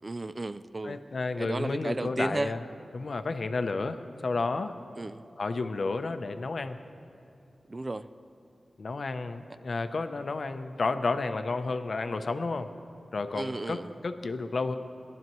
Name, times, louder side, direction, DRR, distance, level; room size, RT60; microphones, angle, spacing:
voice 1, 0.0-1.0 1.4-2.5 5.0-5.2 7.7-8.1 13.3-14.0, right 2 dB, 35° right, 13 dB, 0.3 m, -34 dB
voice 2, 0.8-2.6 2.9-4.7 5.4-6.8 8.8-12.7 13.1-14.8, left 3 dB, 60° left, 9 dB, 0.6 m, -31 dB
20.5 x 11.5 x 3.1 m, 2.7 s
wide cardioid pair, 85°, 0 cm